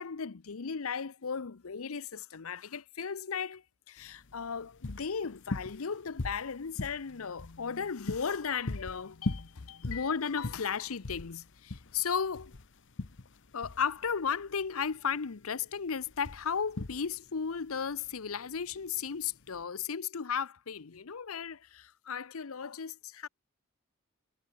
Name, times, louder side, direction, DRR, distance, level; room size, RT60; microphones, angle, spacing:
voice 1, 0.0-12.5 13.5-23.3, left 6 dB, 80° left, 0.7 m, -35 dB
sound 1, 4.0-19.6, left 2 dB, 60° left, 1.1 m, -41 dB
head